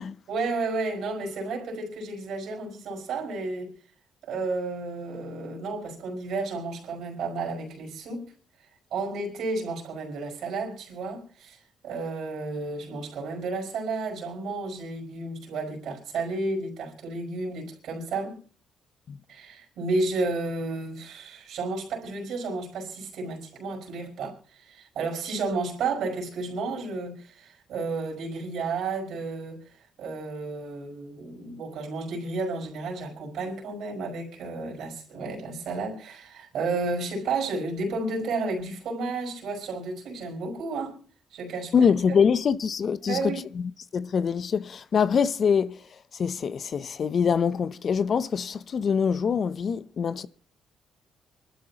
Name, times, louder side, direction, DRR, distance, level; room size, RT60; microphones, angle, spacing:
voice 1, 0.3-3.7 4.2-8.2 8.9-11.6 11.8-18.4 19.3-29.6 30.0-41.0 41.3-41.9 43.0-43.5, right 3 dB, 75° right, 5.2 m, -32 dB
voice 2, 41.7-43.6 43.9-45.8 46.2-50.3, left 6 dB, 50° left, 0.6 m, -24 dB
25.0 x 12.5 x 2.9 m
cardioid pair, 90°, 0 cm